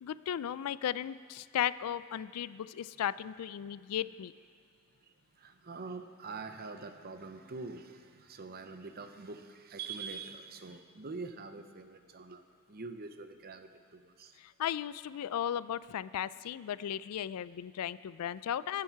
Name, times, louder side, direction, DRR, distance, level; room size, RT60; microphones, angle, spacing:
voice 1, 0.0-4.3 14.6-18.8, left 10 dB, 85° left, 18 dB, 0.3 m, -35 dB
voice 2, 5.4-12.4 12.7-14.3, right 4 dB, 45° right, 8 dB, 0.7 m, -44 dB
21.5 x 7.6 x 4.6 m, 2.1 s
head